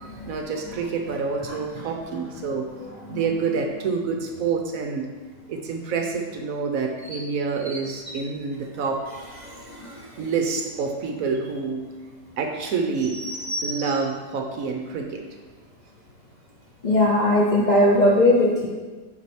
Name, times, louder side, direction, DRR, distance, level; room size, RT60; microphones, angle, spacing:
voice 1, 0.3-2.7 3.1-5.1 5.5-9.0 10.2-11.9 12.4-13.2 13.6-15.3, right 5 dB, 65° right, 3 dB, 0.9 m, -27 dB
voice 2, 9.4-9.9 13.2-13.7 16.8-18.7, left 1 dB, 70° left, -4 dB, 0.4 m, -20 dB
8.3 x 4.9 x 3.1 m, 1.3 s
omnidirectional pair, 1.9 m